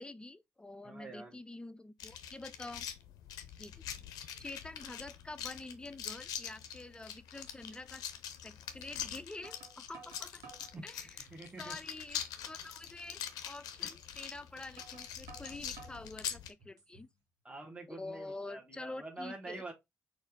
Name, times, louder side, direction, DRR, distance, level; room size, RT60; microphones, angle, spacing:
voice 1, 0.0-2.9 3.6-3.8 4.4-8.0 8.4-10.4 10.8-11.1 11.6-17.1 17.9-19.6, left 2 dB, 15° left, 0.4 m, -47 dB
voice 2, 0.8-1.4 10.7-10.8 11.3-11.8 13.8-13.9 17.4-19.7, right 2 dB, 15° right, 1.3 m, -46 dB
sound 1, 2.0-16.5, left 9 dB, 65° left, 0.5 m, -44 dB
sound 2, 6.9-7.0 7.4-7.6 8.8-8.9 9.4-10.8 11.3-11.8 12.2-12.3 12.8-12.9 14.1-14.2 14.8-16.1 16.6-17.1, right 5 dB, 60° right, 1.4 m, -55 dB
4.1 x 2.5 x 3.6 m
figure-of-eight pair, 40°, 7 cm